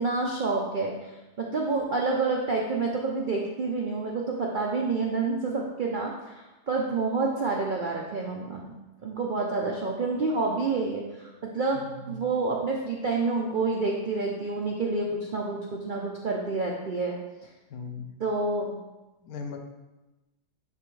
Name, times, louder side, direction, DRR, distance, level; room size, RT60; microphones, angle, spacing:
voice 1, 0.0-8.8 9.0-11.8 12.1-17.1 17.4-17.5 18.2-18.8, right 3 dB, 60° right, -1 dB, 0.5 m, -28 dB
voice 2, 11.7-12.2 17.7-18.2 19.2-19.6, left 4 dB, 70° left, 4 dB, 1.1 m, -38 dB
10.0 x 3.4 x 3.2 m, 1.1 s
omnidirectional pair, 1.7 m